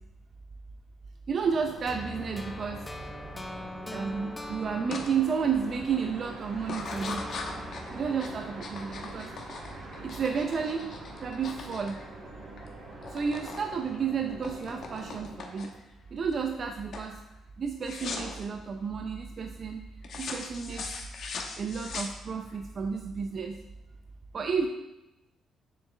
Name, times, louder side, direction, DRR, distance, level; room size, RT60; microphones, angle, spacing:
voice 1, 1.3-2.8 3.9-7.3 7.9-9.3 10.0-10.9 11.2-12.0 13.1-15.7 16.1-17.2 17.6-19.8 20.2-20.9 21.6-23.6 24.3-24.7, right 6 dB, 50° right, 4 dB, 0.6 m, -31 dB
sound 1, 1.4-15.3, right 2 dB, 65° right, 2.8 m, -45 dB
sound 2, 1.9-6.4 6.9-9.9, left 2 dB, 15° left, 0.6 m, -43 dB
sound 3, 4.9-5.1 5.5-6.0 6.6-12.7 12.9-13.7 13.9-15.9 16.4-16.7 16.9-17.1 17.8-18.4 20.0-22.6, left 4 dB, 60° left, 1.1 m, -40 dB
7.0 x 6.5 x 3.4 m, 0.96 s
cardioid pair, 90°, 0 cm